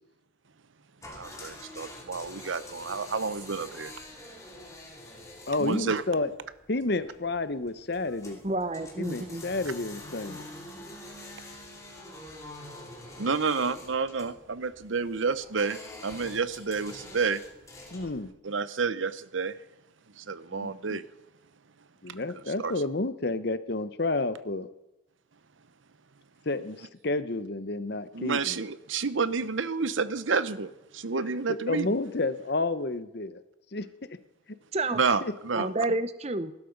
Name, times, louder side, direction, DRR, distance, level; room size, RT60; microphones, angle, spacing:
sound 1, 1.0-18.2, left 2 dB, 15° left, 3.0 m, -46 dB
voice 1, 1.1-3.9 5.6-6.0 13.2-17.4 18.4-19.6 20.2-21.0 22.1-22.2 22.6-22.7 28.1-31.9 34.9-35.7, right 5 dB, 80° right, 0.8 m, -30 dB
voice 2, 5.5-6.3 6.7-8.4 9.0-10.5 17.9-18.3 20.5-21.0 22.0-24.7 26.5-28.6 31.5-33.4 33.7-33.9 35.2-35.3, left 2 dB, 55° left, 0.9 m, -30 dB
voice 3, 8.4-9.4 34.7-35.0 35.5-36.5, right 2 dB, 35° right, 0.8 m, -29 dB
19.5 x 12.0 x 5.3 m
head